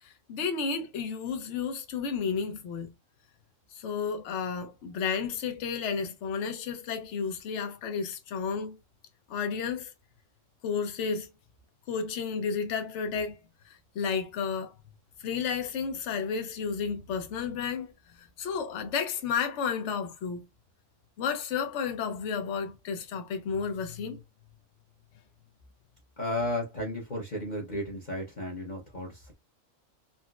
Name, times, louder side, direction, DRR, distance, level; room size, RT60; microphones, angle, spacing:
voice 1, 0.0-2.9 3.7-8.8 9.3-9.9 10.6-11.3 11.9-13.4 13.6-14.7 15.2-17.9 18.2-20.4 21.2-24.2, left 6 dB, 65° left, 1.0 m, -32 dB
voice 2, 26.2-29.3, left 1 dB, 40° left, 0.9 m, -34 dB
3.9 x 2.1 x 2.3 m
omnidirectional pair, 1.3 m